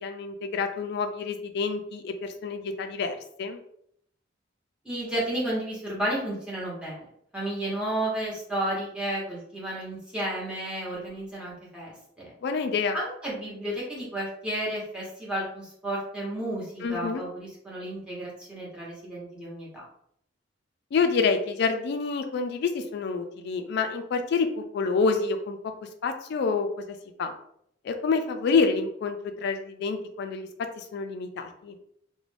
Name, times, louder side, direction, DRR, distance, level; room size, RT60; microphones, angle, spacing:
voice 1, 0.0-3.6 12.4-13.0 16.8-17.2 20.9-25.6 26.0-27.3 27.8-30.5 30.8-31.7, left 4 dB, 60° left, 7 dB, 0.3 m, -28 dB
voice 2, 4.8-7.0 7.3-12.3 12.9-19.8, right 1 dB, 5° right, -6 dB, 1.0 m, -32 dB
2.4 x 2.1 x 3.2 m, 0.69 s
head